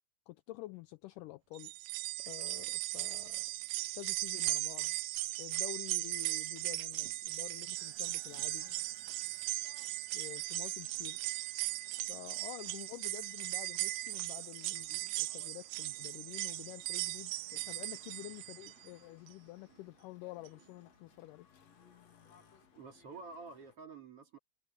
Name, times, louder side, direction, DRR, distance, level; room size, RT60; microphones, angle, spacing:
voice 1, 0.3-1.7 2.2-3.5 3.9-5.0 5.4-8.8 10.1-11.2 12.1-21.5, left 18 dB, 90° left, 1.8 m, -49 dB
sound 1, 1.6-18.9 19.3-19.4 20.5-20.6, right 22 dB, 85° right, 2.4 m, -38 dB
sound 2, 2.8-21.4, right 8 dB, 70° right, 5.4 m, -70 dB
sound 3, 7.8-23.8, left 6 dB, 50° left, 2.9 m, -65 dB
voice 2, 22.7-24.4, right 4 dB, 40° right, 3.0 m, -49 dB
omnidirectional pair, 4.3 m